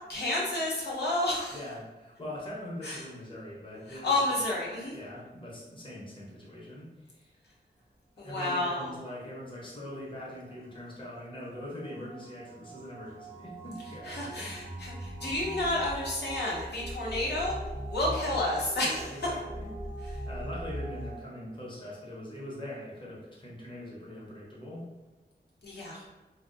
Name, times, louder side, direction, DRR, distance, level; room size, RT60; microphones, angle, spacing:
voice 1, 0.1-1.6 2.8-3.0 3.9-4.9 8.2-8.9 14.0-17.6 17.9-19.1 25.6-26.0, left 1 dB, 70° left, -6 dB, 0.7 m, -30 dB
voice 2, 1.5-4.4 4.9-7.3 8.2-14.5 18.0-18.3 18.8-19.7 20.2-24.8, left 1 dB, 30° left, -6 dB, 0.8 m, -42 dB
sound 1, 10.0-21.2, right 1 dB, 15° right, 0.3 m, -41 dB
2.4 x 2.1 x 2.4 m, 1.1 s
wide cardioid pair, 85°, 18 cm